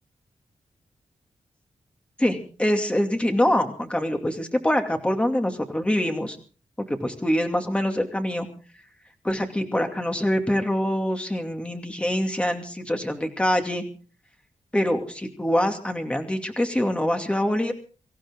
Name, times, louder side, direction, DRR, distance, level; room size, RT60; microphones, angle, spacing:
voice 1, 2.2-6.4 6.9-8.5 9.2-13.8 14.7-17.7, left 1 dB, 10° left, 5 dB, 2.5 m, -24 dB
25.0 x 15.0 x 3.8 m, 0.38 s
wide cardioid pair, 140°, 12 cm